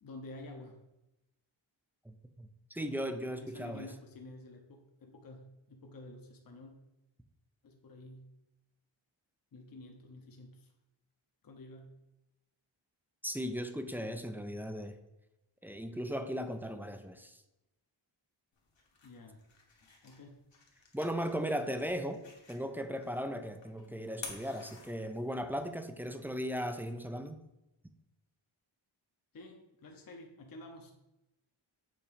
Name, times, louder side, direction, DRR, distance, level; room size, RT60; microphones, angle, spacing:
voice 1, 0.0-0.8 2.8-6.7 7.6-8.3 9.5-10.7 11.4-11.9 19.0-19.4 19.8-20.4 29.3-30.9, left 2 dB, 45° left, 3 dB, 0.8 m, -50 dB
voice 2, 2.1-3.9 13.2-15.0 15.6-17.4 20.9-22.2 22.5-27.4, equal, 5° right, 8 dB, 0.3 m, -37 dB
sound 1, 18.5-25.5, left 4 dB, 65° left, 1.4 m, -52 dB
7.1 x 2.9 x 5.1 m, 0.94 s
wide cardioid pair, 120°, 48 cm